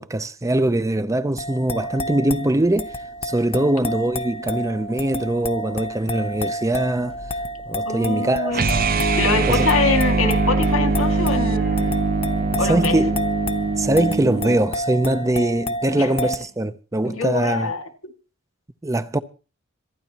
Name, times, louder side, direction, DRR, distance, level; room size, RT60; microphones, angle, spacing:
voice 1, 0.0-2.9 3.2-7.2 7.7-8.9 9.4-9.7 12.7-13.2 13.8-17.7 18.8-19.2, right 1 dB, 15° right, 0.6 m, -22 dB
sound 1, 1.4-16.4, equal, 30° left, 0.9 m, -30 dB
voice 2, 7.9-8.7 9.1-12.0 12.6-13.0 16.0-16.1 17.0-17.9, left 4 dB, 85° left, 2.2 m, -24 dB
sound 2, 8.5-14.6, right 3 dB, 45° right, 0.8 m, -22 dB
26.5 x 10.0 x 2.9 m
head